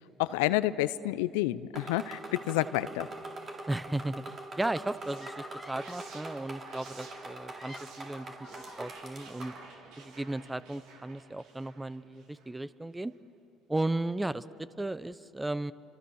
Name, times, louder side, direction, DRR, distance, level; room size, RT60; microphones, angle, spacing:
voice 1, 0.2-3.1, left 16 dB, 80° left, 15 dB, 0.6 m, -29 dB
sound 1, 1.7-9.6, right 2 dB, 40° right, 3.7 m, -44 dB
voice 2, 3.7-4.2 4.6-9.5 10.0-13.1 13.7-15.7, right 2 dB, 10° right, 16 dB, 0.8 m, -35 dB
sound 2, 4.8-12.7, right 4 dB, 70° right, 3.3 m, -53 dB
sound 3, 5.2-6.2 7.3-9.7, left 2 dB, 15° left, 1.9 m, -51 dB
29.5 x 25.5 x 6.5 m, 2.7 s
hypercardioid pair, 65°, 0 cm